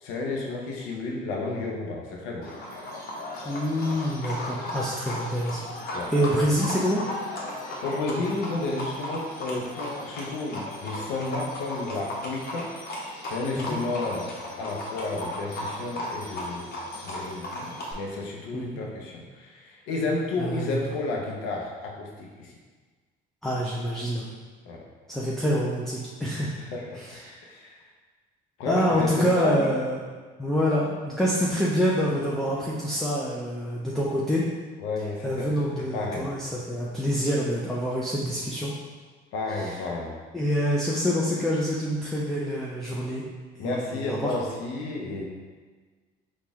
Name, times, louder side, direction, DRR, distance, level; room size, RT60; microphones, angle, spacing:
voice 1, 0.0-2.5 5.9-6.1 7.8-12.7 13.3-14.3 14.6-16.7 17.0-22.5 24.7-24.8 26.6-27.8 28.6-29.7 34.8-36.3 39.3-40.1 43.6-45.2, left 3 dB, 80° left, -1 dB, 0.6 m, -31 dB
Livestock farm animals working animals, 2.4-17.9, left 1 dB, 50° left, 1.0 m, -36 dB
voice 2, 3.4-7.1 13.6-13.8 18.5-18.8 20.4-20.7 23.4-24.3 25.1-26.5 27.0-27.4 28.7-30.0 30.4-34.5 35.2-38.7 39.5-39.8 40.3-43.2 43.6-44.4, equal, ahead, -5 dB, 0.6 m, -26 dB
4.2 x 2.4 x 3.4 m, 1.4 s
supercardioid pair, 75°, 20 cm